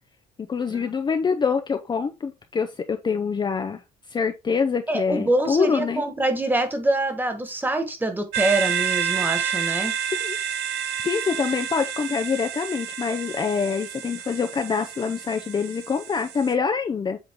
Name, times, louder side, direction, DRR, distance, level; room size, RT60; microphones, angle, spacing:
voice 1, 0.4-3.8 4.1-6.0 10.2-10.4 11.0-17.2, left 5 dB, 25° left, 0.6 m, -25 dB
voice 2, 4.9-9.9, right 1 dB, 10° right, 1.6 m, -25 dB
sound 1, 8.3-16.5, right 8 dB, 80° right, 0.9 m, -29 dB
7.8 x 3.7 x 3.7 m
cardioid pair, 110°, 17 cm